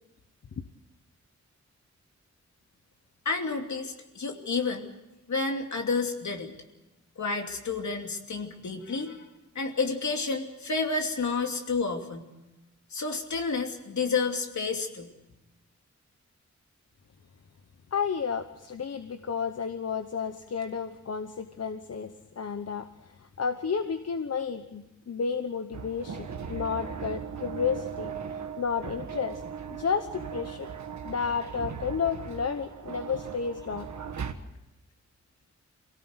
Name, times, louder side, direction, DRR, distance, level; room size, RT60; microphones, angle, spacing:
voice 1, 3.2-4.9 5.3-6.5 7.2-9.2 9.5-12.3 12.9-15.1, left 4 dB, 75° left, 3 dB, 2.8 m, -30 dB
voice 2, 17.9-28.1 28.6-29.4 29.7-30.7 31.0-33.9, left 6 dB, 55° left, 8 dB, 1.0 m, -32 dB
sound 1, 25.7-34.3, right 7 dB, 75° right, 1.6 m, -38 dB
24.5 x 17.5 x 8.1 m, 1.0 s
wide cardioid pair, 105°, 29 cm